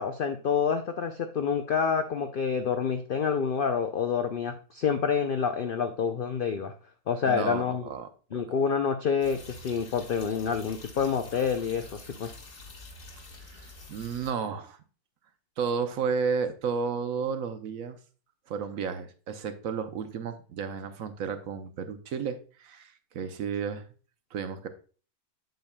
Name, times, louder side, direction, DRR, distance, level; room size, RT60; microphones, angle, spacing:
voice 1, 0.0-6.7 7.1-7.9 8.3-12.3, left 6 dB, 70° left, 7 dB, 0.5 m, -28 dB
voice 2, 7.3-8.4 13.4-14.8 15.6-18.0 18.5-23.8 24.3-24.7, right 6 dB, 70° right, 9 dB, 1.1 m, -32 dB
sound 1, 9.2-14.3, left 2 dB, 40° left, 1.2 m, -47 dB
7.8 x 7.0 x 2.2 m, 0.38 s
omnidirectional pair, 1.5 m